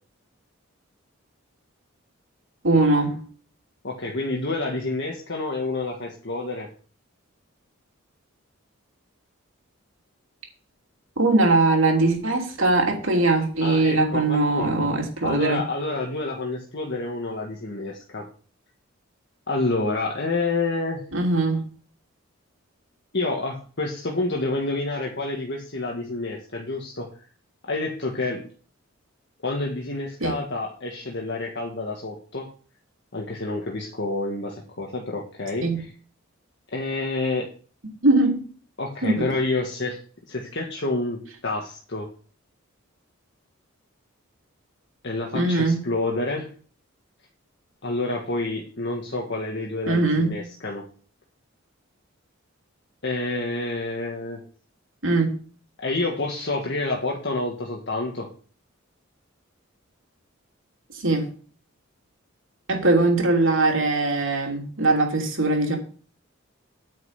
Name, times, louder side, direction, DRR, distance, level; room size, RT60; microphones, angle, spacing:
voice 1, 2.6-3.2 11.2-15.6 21.1-21.6 30.2-30.3 35.6-35.8 38.0-38.4 39.0-39.3 45.3-45.8 49.9-50.4 55.0-55.3 60.9-61.3 62.7-65.8, right 2 dB, 70° right, 1 dB, 3.0 m, -21 dB
voice 2, 3.8-6.7 13.6-14.9 15.2-18.3 19.5-21.0 23.1-27.1 27.6-28.4 29.4-32.5 33.1-35.8 36.7-37.5 38.8-40.0 40.3-42.1 45.0-46.5 47.8-50.9 53.0-54.4 55.8-58.3, left 2 dB, 55° left, -1 dB, 1.7 m, -28 dB
9.2 x 5.4 x 8.2 m, 0.42 s
head